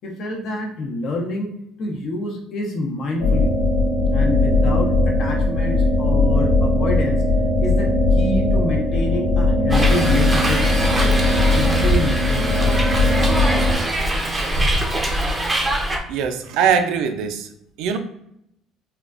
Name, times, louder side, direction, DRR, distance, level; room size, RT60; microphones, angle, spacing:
voice 1, 0.0-1.5 1.8-3.5 4.1-7.2 7.6-10.6 11.0-11.1 11.5-12.6, left 2 dB, 55° left, 1 dB, 0.8 m, -27 dB
sound 1, 3.2-13.7, left 2 dB, 90° left, 0.9 m, -18 dB
Hiss, 9.7-16.0, right 1 dB, 15° right, 0.6 m, -23 dB
voice 2, 16.1-17.5 17.8-18.0, right 7 dB, 75° right, 6 dB, 0.5 m, -21 dB
3.7 x 2.3 x 2.5 m, 0.76 s
cardioid pair, 125°, 0 cm